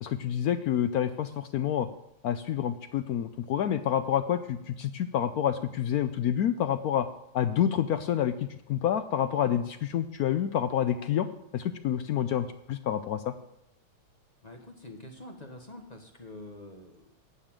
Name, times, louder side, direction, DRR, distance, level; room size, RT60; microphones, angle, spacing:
voice 1, 0.0-1.9 2.2-7.1 7.3-11.3 11.5-13.3, left 10 dB, 80° left, 10 dB, 0.8 m, -28 dB
voice 2, 14.4-17.1, left 1 dB, 25° left, 3 dB, 1.0 m, -46 dB
9.7 x 6.8 x 8.9 m, 0.80 s
omnidirectional pair, 2.2 m